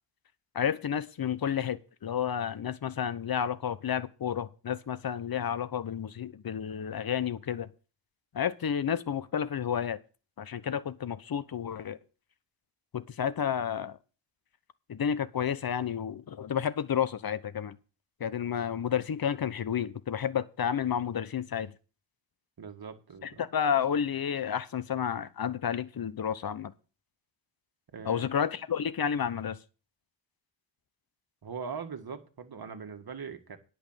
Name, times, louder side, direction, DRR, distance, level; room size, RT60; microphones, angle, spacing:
voice 1, 0.5-7.7 8.3-10.0 10.4-12.0 12.9-14.0 14.9-17.7 18.2-21.7 23.4-26.7 28.0-29.6, left 8 dB, 50° left, 0.9 m, -31 dB
voice 2, 22.6-23.4 27.9-28.3 31.4-33.6, right 6 dB, 50° right, 1.8 m, -41 dB
10.5 x 5.7 x 7.4 m
cardioid pair, 75°, 47 cm